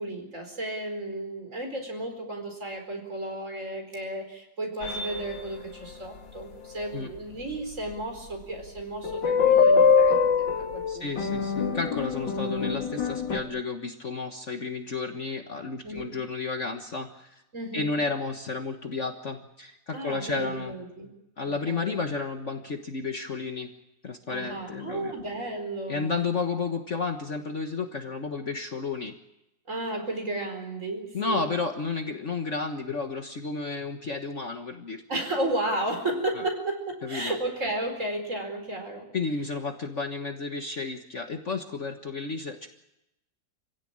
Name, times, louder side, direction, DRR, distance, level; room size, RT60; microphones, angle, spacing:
voice 1, 0.0-11.3 15.8-16.2 17.5-18.0 19.9-21.1 21.5-22.0 24.3-26.3 29.7-31.5 35.1-39.1, right 1 dB, 40° right, 4 dB, 4.9 m, -33 dB
sound 1, 4.8-5.5 7.5-7.6 9.0-13.4, left 5 dB, 75° left, 2.7 m, -23 dB
voice 2, 10.9-17.3 17.7-20.8 21.4-23.7 24.0-25.1 25.9-29.1 31.1-35.0 37.0-37.3 39.1-42.7, left 4 dB, 45° left, 5 dB, 1.5 m, -32 dB
26.5 x 16.5 x 8.8 m, 0.88 s
omnidirectional pair, 2.0 m